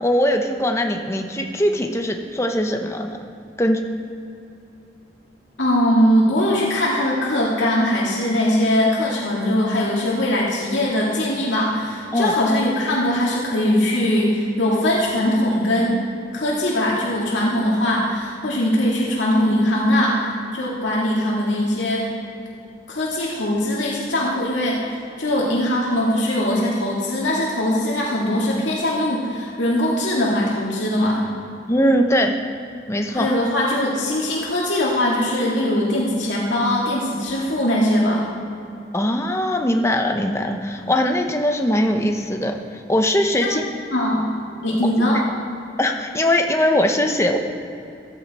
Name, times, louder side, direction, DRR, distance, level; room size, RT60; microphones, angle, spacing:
voice 1, 0.0-3.2 3.6-3.8 12.1-12.3 31.7-32.4 32.9-33.3 38.9-43.6 45.8-47.4, left 1 dB, 15° left, 4 dB, 0.9 m, -21 dB
voice 2, 5.6-16.0 16.3-20.2 20.5-22.0 22.9-24.8 25.2-31.2 33.1-38.3 43.4-43.5 43.9-44.3 44.6-45.2, left 1 dB, 85° left, -5 dB, 2.2 m, -21 dB
15.5 x 11.5 x 4.3 m, 2.7 s
head